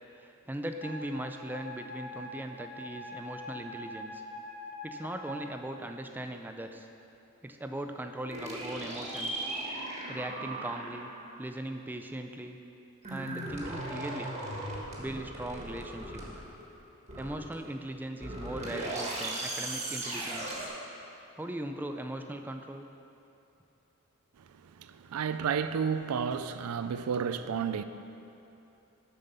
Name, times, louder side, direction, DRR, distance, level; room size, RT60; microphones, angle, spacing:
voice 1, 0.2-4.2 4.8-6.9 7.4-9.5 9.8-11.1 11.4-12.6 13.1-14.3 15.0-16.4 17.2-20.6 21.4-22.9, right 1 dB, 10° right, 5 dB, 0.3 m, -39 dB
Wind instrument woodwind instrument, 0.8-5.5, left 2 dB, 80° left, 1.7 m, -44 dB
sound 1, 8.3-11.3 13.0-16.7 17.1-17.8 18.2-20.7, right 1 dB, 30° right, 1.4 m, -38 dB
voice 2, 24.4-27.8, right 6 dB, 85° right, 11 dB, 0.4 m, -32 dB
7.3 x 5.6 x 6.7 m, 2.8 s
head